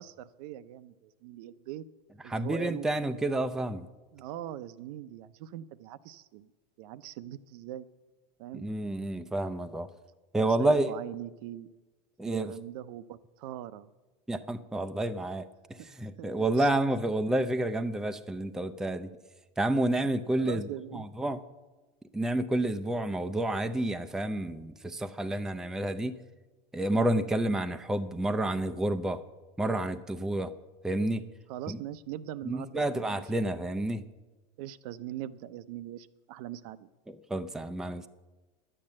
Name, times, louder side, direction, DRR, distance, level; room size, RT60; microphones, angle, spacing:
voice 1, 0.0-1.8 2.2-2.9 4.1-6.5 6.8-7.9 8.4-8.6 10.4-11.7 12.2-13.9 15.8-15.9 16.2-16.7 20.4-21.1 31.5-33.2 34.6-36.9, right 12 dB, 65° right, 14 dB, 0.6 m, -41 dB
voice 2, 2.3-3.9 8.5-9.9 10.3-10.9 12.2-12.5 14.3-19.1 19.6-21.4 22.1-26.2 26.7-29.2 29.6-30.5 30.8-31.3 31.7-31.8 32.4-34.0 37.1-38.1, right 1 dB, ahead, 8 dB, 0.5 m, -29 dB
11.0 x 8.8 x 7.5 m, 1.2 s
supercardioid pair, 120°, 21 cm